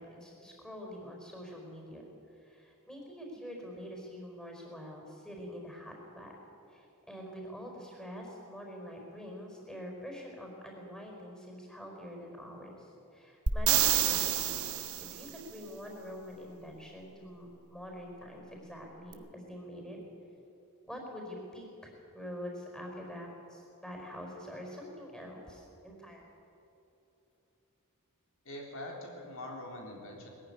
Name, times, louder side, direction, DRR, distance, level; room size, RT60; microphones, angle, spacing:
voice 1, 0.0-2.0 2.3-6.3 6.7-14.6 15.1-20.0 20.9-26.2, equal, 5° left, 0 dB, 4.7 m, -45 dB
sound 1, 13.5-15.3 19.1-19.2, right 10 dB, 70° right, 1.3 m, -28 dB
voice 2, 28.5-30.3, left 1 dB, 65° left, 0 dB, 3.6 m, -43 dB
20.5 x 15.0 x 9.9 m, 3.0 s
head